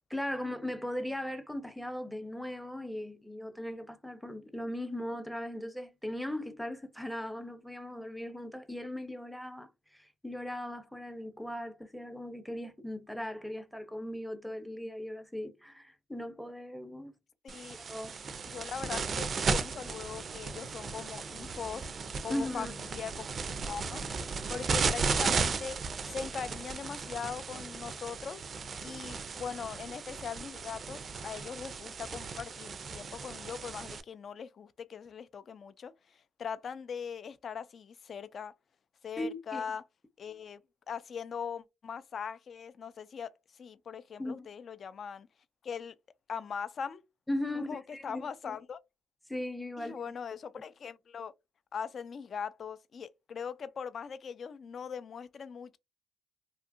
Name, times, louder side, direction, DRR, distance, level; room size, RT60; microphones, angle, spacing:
voice 1, 0.1-17.1 17.7-18.1 22.3-22.7 39.2-39.6 44.2-44.5 47.3-48.6 49.3-50.1, left 1 dB, ahead, 0.6 m, -38 dB
voice 2, 17.4-17.8 18.5-21.9 22.2-23.3 23.7-24.1 24.5-25.8 26.1-28.4 28.8-38.5 39.0-39.8 40.2-40.6 40.9-45.3 45.6-45.9 46.3-47.0 47.5-48.8 49.8-51.3 51.7-55.8, left 6 dB, 50° left, 0.4 m, -41 dB
sound 1, 17.5-34.0, right 4 dB, 45° right, 0.4 m, -35 dB
2.8 x 2.5 x 2.5 m
cardioid pair, 85°, 0 cm